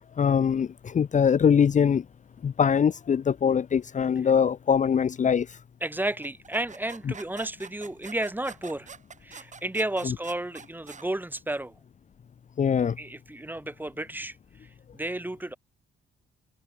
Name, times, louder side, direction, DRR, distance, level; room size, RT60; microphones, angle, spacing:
voice 1, 0.2-2.0 2.4-5.6 10.0-10.1 12.6-13.0, left 7 dB, 40° left, 0.7 m, -23 dB
voice 2, 5.8-8.9 9.2-11.7 13.0-14.4 14.9-15.6, right 1 dB, 10° right, 1.6 m, -32 dB
sound 1, 6.2-11.1, right 5 dB, 35° right, 4.6 m, -46 dB
cardioid pair, 90°, 20 cm